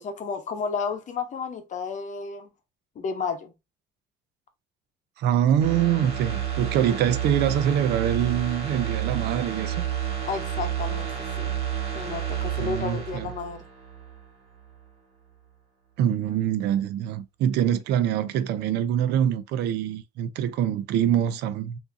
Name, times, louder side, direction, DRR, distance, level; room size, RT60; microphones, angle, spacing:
voice 1, 0.0-2.5 3.0-3.5 10.3-11.1 11.4-11.6 11.9-13.6, left 5 dB, 45° left, 0.9 m, -32 dB
voice 2, 5.2-9.8 12.6-13.3 16.0-21.8, right 10 dB, 80° right, 0.5 m, -24 dB
sound 1, 5.6-14.3 14.6-14.7, right 9 dB, 35° right, 1.4 m, -30 dB
3.6 x 2.7 x 2.6 m
cardioid pair, 110°, 17 cm